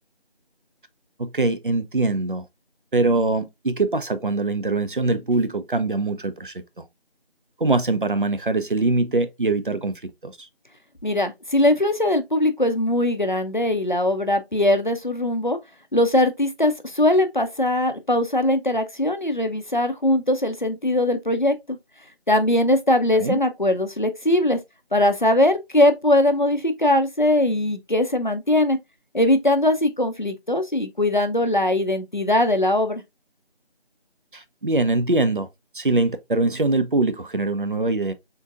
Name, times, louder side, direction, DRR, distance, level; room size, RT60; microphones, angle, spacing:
voice 1, 1.2-2.4 2.9-6.5 7.6-10.5 23.2-23.4 34.3-35.5 35.7-38.1, right 2 dB, 55° right, 0.4 m, -23 dB
voice 2, 11.0-15.6 15.9-21.8 22.3-24.6 24.9-28.8 29.1-33.0, left 1 dB, 50° left, 0.5 m, -21 dB
3.7 x 2.6 x 2.4 m
figure-of-eight pair, 180°, 31 cm